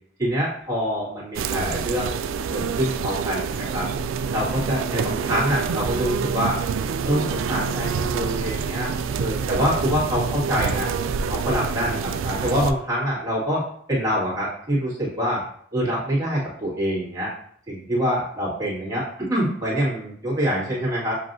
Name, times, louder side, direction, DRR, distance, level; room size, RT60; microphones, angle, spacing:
voice 1, 0.2-2.2 2.5-3.9 4.3-6.6 7.0-8.9 9.2-10.9 11.3-15.4 15.7-17.3 17.7-21.1, equal, 20° right, -8 dB, 1.9 m, -25 dB
sound 1, 1.3-12.7, right 6 dB, 80° right, 0.3 m, -27 dB
7.3 x 2.7 x 2.6 m, 0.63 s
head